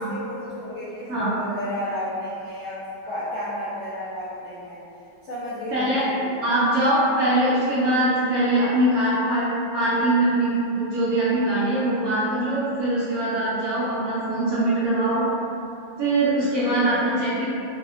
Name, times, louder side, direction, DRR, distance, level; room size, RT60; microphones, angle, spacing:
voice 1, 0.0-4.8 5.2-6.6, left 1 dB, 70° left, -12 dB, 0.6 m, -32 dB
voice 2, 5.7-6.0 6.4-15.2 16.0-17.4, right 1 dB, 65° right, -11 dB, 0.9 m, -22 dB
3.4 x 2.2 x 2.3 m, 2.7 s
omnidirectional pair, 2.1 m